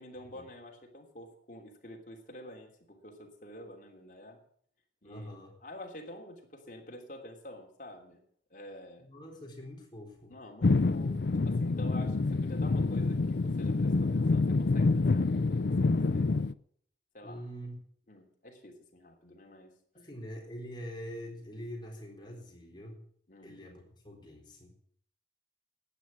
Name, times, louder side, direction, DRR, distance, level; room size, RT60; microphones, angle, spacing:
voice 1, 0.0-4.4 5.0-8.2 8.5-9.1 10.3-16.3 17.1-17.5 18.1-19.8 23.3-23.6, left 1 dB, 45° left, 1 dB, 3.1 m, -49 dB
voice 2, 5.0-5.6 9.0-10.4 17.2-17.8 19.9-23.0 23.4-24.7, equal, 25° left, -1 dB, 3.9 m, -44 dB
sound 1, 10.6-16.5, left 3 dB, 70° left, 0.5 m, -27 dB
12.0 x 9.8 x 8.5 m, 0.63 s
head